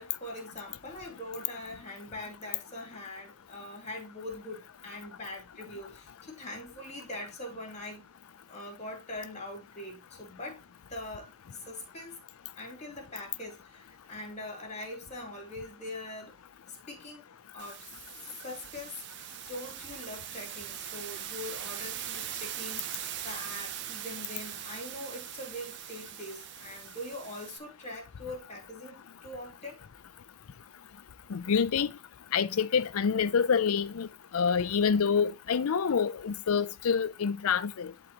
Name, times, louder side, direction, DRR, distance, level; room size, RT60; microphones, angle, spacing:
voice 1, 0.0-8.1 8.5-10.6 10.9-12.2 12.6-16.4 16.7-17.2 17.5-17.9 18.4-19.0 19.5-29.8, left 1 dB, 30° left, 2.8 m, -42 dB
sound 1, 17.6-27.6, right 11 dB, 55° right, 0.6 m, -41 dB
voice 2, 31.3-31.9 32.3-34.1 34.3-37.9, left 6 dB, 80° left, 0.5 m, -27 dB
11.0 x 4.0 x 2.9 m
head